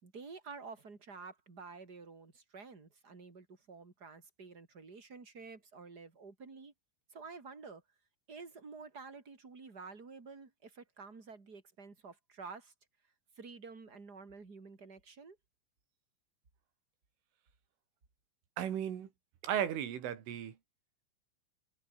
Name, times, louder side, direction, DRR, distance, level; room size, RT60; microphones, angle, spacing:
voice 1, 0.0-6.7 7.1-7.8 8.3-12.7 13.4-15.4, right 4 dB, 20° right, 3.5 m, -50 dB
voice 2, 18.6-19.1 19.4-20.6, right 10 dB, 75° right, 5.5 m, -35 dB
omnidirectional pair, 5.7 m